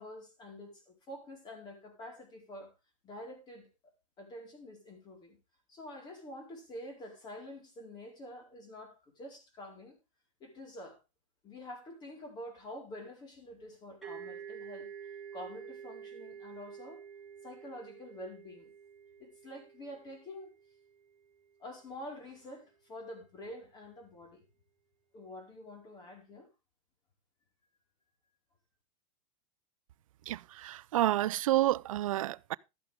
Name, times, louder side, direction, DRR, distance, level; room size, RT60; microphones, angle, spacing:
voice 1, 0.0-2.7 3.0-3.7 4.2-5.4 5.7-9.9 10.4-11.0 11.4-14.9 15.3-17.0 17.4-18.7 19.2-20.5 21.6-24.4 25.1-26.5, left 1 dB, 25° left, 4.6 m, -47 dB
sound 1, 14.0-21.5, right 7 dB, ahead, 4.2 m, -49 dB
voice 2, 30.3-32.6, right 15 dB, 90° right, 0.5 m, -29 dB
12.5 x 9.6 x 3.6 m
supercardioid pair, 145°, 17 cm